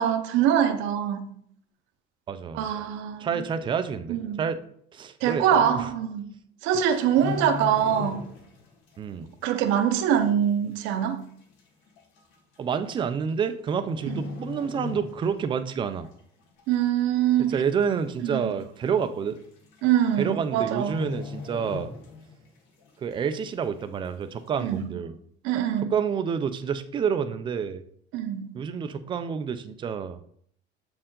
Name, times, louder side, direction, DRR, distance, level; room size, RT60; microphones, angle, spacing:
voice 1, 0.0-1.4 2.5-3.4 4.1-4.4 5.2-6.3 6.6-8.3 9.4-11.3 14.1-14.2 16.7-17.6 18.2-18.5 19.8-21.0 24.6-24.9 25.4-25.9 28.1-28.6, right 9 dB, 85° right, 0.8 m, -24 dB
voice 2, 2.3-2.7 3.2-4.6 4.9-5.9 9.0-9.3 12.6-16.1 17.5-19.4 20.2-21.9 23.0-25.1 25.9-27.8 28.5-30.2, right 6 dB, 25° right, 0.4 m, -28 dB
sound 1, 6.9-8.6 8.9-9.2 9.7-9.8 10.7-10.8 11.0-11.1 12.0-12.2 13.3-13.7 14.0-15.5 15.9-16.1 16.6-17.1 17.5-17.6 17.8-17.9 18.3-18.4 19.4-19.5 19.7-20.0 20.3-20.4 20.8-22.5 22.8-22.9, left 4 dB, 85° left, 1.6 m, -37 dB
7.5 x 4.4 x 3.8 m
cardioid pair, 175°, 19 cm